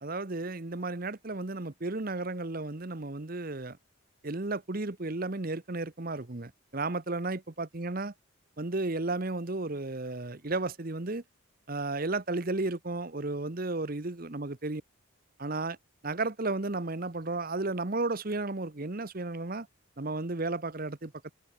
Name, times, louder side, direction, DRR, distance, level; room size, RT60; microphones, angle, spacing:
voice 1, 0.0-3.8 4.2-8.1 8.6-11.2 11.7-14.8 15.4-15.8 16.0-19.7 20.0-21.3, right 2 dB, 40° right, 1.0 m, -33 dB
head